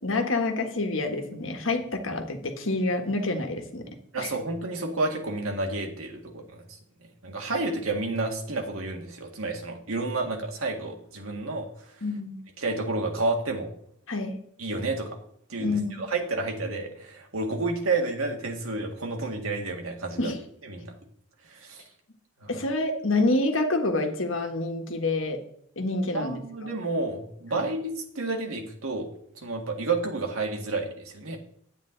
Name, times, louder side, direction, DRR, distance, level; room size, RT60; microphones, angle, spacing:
voice 1, 0.0-4.3 12.0-12.4 14.1-14.4 15.6-16.0 20.2-20.4 22.5-25.4 25.7-26.7 27.5-27.7, left 2 dB, 70° left, 5 dB, 1.5 m, -28 dB
voice 2, 4.1-6.6 7.2-12.0 12.6-13.7 14.6-15.2 15.5-20.3 20.7-21.0 21.5-21.8 22.4-22.5 26.1-29.1 29.4-31.4, right 3 dB, 85° right, 2 dB, 1.9 m, -30 dB
10.0 x 8.9 x 3.9 m, 0.66 s
head